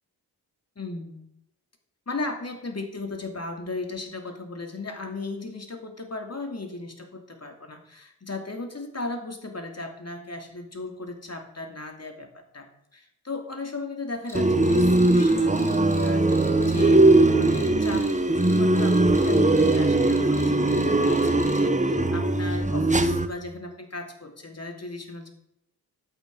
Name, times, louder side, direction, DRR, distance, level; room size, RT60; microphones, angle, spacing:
voice 1, 0.8-1.3 2.1-25.3, left 2 dB, 40° left, 4 dB, 2.8 m, -36 dB
Cricket, 14.3-21.7, equal, 5° left, 3.1 m, -45 dB
sound 1, 14.3-23.3, right 2 dB, 20° right, 1.3 m, -20 dB
11.5 x 8.6 x 5.5 m, 0.81 s
cardioid pair, 45°, 40 cm